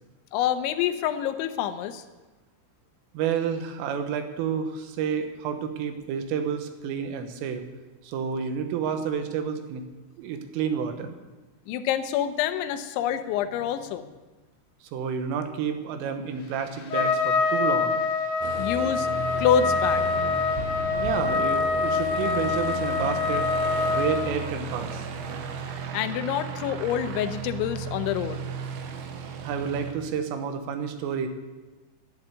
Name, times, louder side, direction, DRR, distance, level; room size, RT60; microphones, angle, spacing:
voice 1, 0.3-2.0 11.7-14.1 18.6-19.1 19.4-20.1 25.9-28.4, left 9 dB, 80° left, 10 dB, 3.1 m, -27 dB
voice 2, 3.1-7.6 8.0-9.9 10.2-11.2 14.9-18.0 21.0-23.5 23.8-25.1 29.4-31.3, right 7 dB, 90° right, 7 dB, 3.9 m, -30 dB
Trumpet, 16.9-24.2, left 4 dB, 55° left, 3.7 m, -25 dB
Aircraft, 18.4-29.9, right 4 dB, 70° right, 2.6 m, -35 dB
12.0 x 11.5 x 9.4 m, 1.2 s
omnidirectional pair, 5.6 m